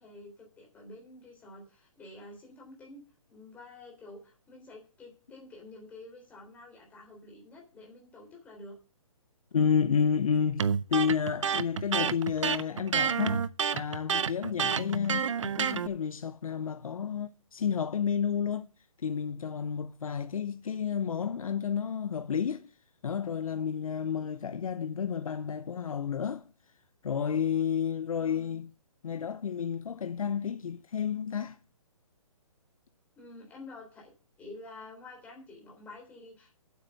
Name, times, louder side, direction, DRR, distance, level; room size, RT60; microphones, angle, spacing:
voice 1, 0.0-3.0 3.3-8.7 28.2-28.6 33.1-34.1 34.4-36.5, left 2 dB, 10° left, 3.5 m, -49 dB
voice 2, 9.5-13.5 13.7-18.7 19.0-22.7 23.0-26.5 27.0-28.7 29.0-31.6, left 7 dB, 70° left, 0.9 m, -31 dB
Electric guitar, 10.6-15.9, right 7 dB, 60° right, 0.7 m, -29 dB
8.9 x 8.2 x 6.6 m
hypercardioid pair, 165°, 18 cm